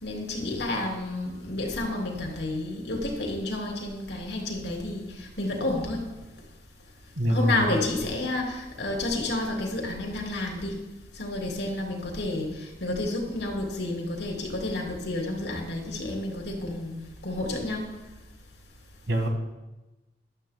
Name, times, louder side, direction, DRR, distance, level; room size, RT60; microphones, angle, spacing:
voice 1, 0.0-6.0 7.3-10.7 11.2-12.5 12.8-16.9 17.2-17.9, left 2 dB, 70° left, 0 dB, 3.2 m, -30 dB
voice 2, 7.2-7.7 19.1-19.3, equal, 90° right, 4 dB, 1.8 m, -24 dB
14.5 x 12.0 x 2.2 m, 1.1 s
head